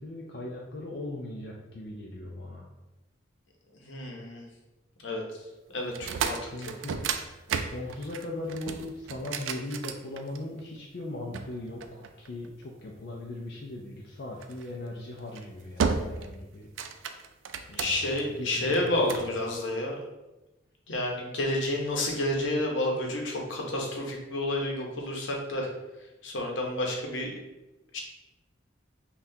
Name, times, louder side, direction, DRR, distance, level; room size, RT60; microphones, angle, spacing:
voice 1, 0.0-2.7 6.4-7.0 7.5-16.7 17.7-18.0 18.4-19.2, left 2 dB, 55° left, -2 dB, 0.4 m, -39 dB
voice 2, 3.8-4.4 5.0-5.2 5.7-6.7 17.7-20.0 20.9-25.7 26.2-27.3 27.9-28.0, left 1 dB, 80° left, 0 dB, 0.8 m, -30 dB
sound 1, 5.9-10.6 11.3-12.6 14.4-14.7 15.2-15.4 15.8-16.3 16.6-18.2 18.7-19.3, right 6 dB, 85° right, 0.3 m, -33 dB
5.6 x 2.3 x 2.7 m, 1.0 s
head